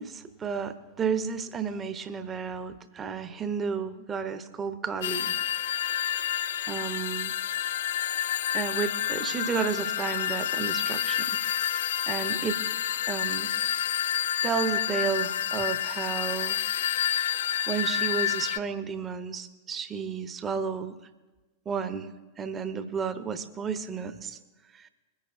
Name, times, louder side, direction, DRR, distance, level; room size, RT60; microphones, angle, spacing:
voice 1, 0.0-5.4 6.7-7.3 8.5-11.4 12.1-12.6 13.1-13.5 14.4-16.6 17.7-21.0 21.7-22.1 22.4-24.4 24.7-24.9, right 6 dB, 20° right, 11 dB, 0.9 m, -32 dB
sound 1, 5.0-18.6, left 10 dB, 60° left, 0.3 m, -29 dB
23.0 x 10.5 x 2.7 m, 1.2 s
figure-of-eight pair, 90°, 0 cm